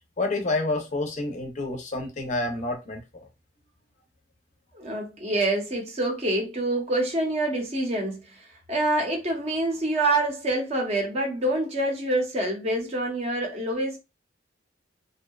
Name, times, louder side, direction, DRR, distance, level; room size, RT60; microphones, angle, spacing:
voice 1, 0.2-3.0, left 2 dB, 40° left, 0.5 m, -28 dB
voice 2, 4.7-14.0, right 1 dB, 35° right, 0.6 m, -26 dB
2.6 x 2.1 x 2.2 m
head